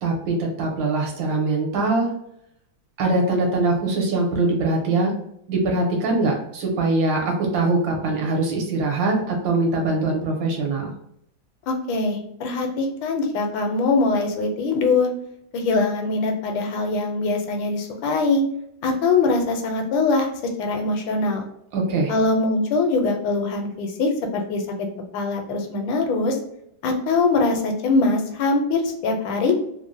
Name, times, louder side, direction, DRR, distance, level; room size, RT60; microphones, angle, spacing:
voice 1, 0.0-2.1 3.0-5.1 5.5-10.9 21.7-22.1, right 2 dB, 75° right, 0 dB, 1.5 m, -22 dB
voice 2, 11.7-15.1 15.5-18.4 18.8-20.3 20.6-21.5 22.1-24.6 25.1-26.4 26.8-29.5, left 3 dB, 85° left, 3 dB, 1.3 m, -22 dB
3.4 x 2.1 x 2.5 m, 0.73 s
omnidirectional pair, 2.1 m